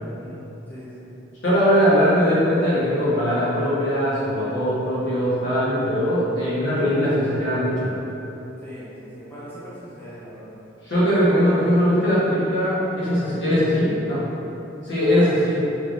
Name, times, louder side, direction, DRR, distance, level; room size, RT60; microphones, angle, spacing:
voice 1, 0.1-1.1 8.6-10.6 15.0-15.3 15.6-15.7, equal, 10° left, -11 dB, 0.5 m, -41 dB
voice 2, 1.4-7.9 10.8-14.2 14.8-15.6, equal, 70° left, -9 dB, 1.0 m, -20 dB
3.2 x 3.1 x 2.5 m, 3.0 s
head